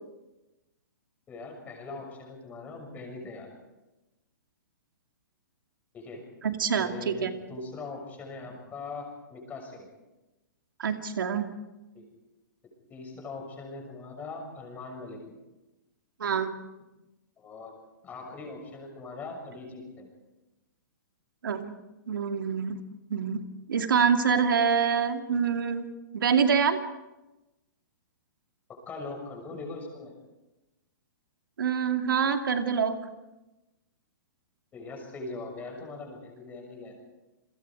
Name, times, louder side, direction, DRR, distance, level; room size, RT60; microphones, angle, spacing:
voice 1, 1.3-3.5 5.9-6.2 6.8-9.9 11.9-12.0 12.9-15.2 17.4-17.7 18.0-20.1 28.7-30.1 34.7-37.0, left 3 dB, 15° left, 2 dB, 6.4 m, -41 dB
voice 2, 6.4-7.3 10.8-11.5 16.2-16.5 21.4-21.7 22.1-22.8 23.1-25.9 26.1-26.8 31.6-33.0, right 6 dB, 85° right, 5 dB, 2.4 m, -26 dB
29.5 x 22.0 x 4.8 m, 1.0 s
hypercardioid pair, 155°, 11 cm